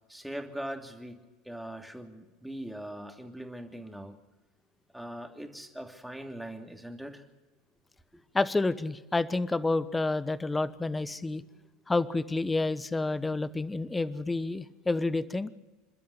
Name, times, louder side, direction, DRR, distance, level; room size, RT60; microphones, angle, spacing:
voice 1, 0.1-4.2 4.9-7.2, right 1 dB, ahead, 4 dB, 2.9 m, -41 dB
voice 2, 8.3-11.4 11.9-15.5, left 3 dB, 15° left, 16 dB, 1.0 m, -29 dB
28.0 x 12.5 x 8.0 m, 1.2 s
hypercardioid pair, 75°, 0 cm